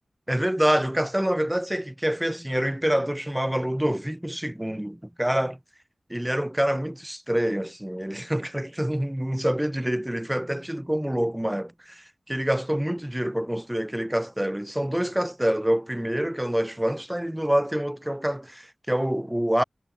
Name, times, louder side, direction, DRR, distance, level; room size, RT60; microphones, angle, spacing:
voice 1, 0.3-5.6 6.1-19.6, equal, 10° right, 3.1 m, -26 dB
wide cardioid pair, 60°, 0 cm